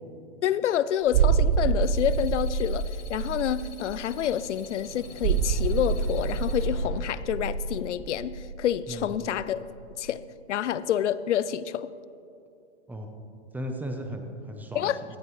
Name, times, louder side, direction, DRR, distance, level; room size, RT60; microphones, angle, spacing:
voice 1, 0.4-9.6 10.0-10.2 10.5-11.9 14.7-15.0, left 10 dB, 85° left, 16 dB, 0.6 m, -28 dB
sound 1, 1.1-9.5 9.8-9.9, right 6 dB, 20° right, 0.4 m, -27 dB
sound 2, 1.8-6.6, left 7 dB, 25° left, 1.6 m, -49 dB
sound 3, 3.7-8.2, left 5 dB, 55° left, 2.6 m, -46 dB
voice 2, 13.5-15.2, equal, 5° right, 4 dB, 0.8 m, -36 dB
18.0 x 13.5 x 3.2 m, 2.7 s
hypercardioid pair, 145°, 35 cm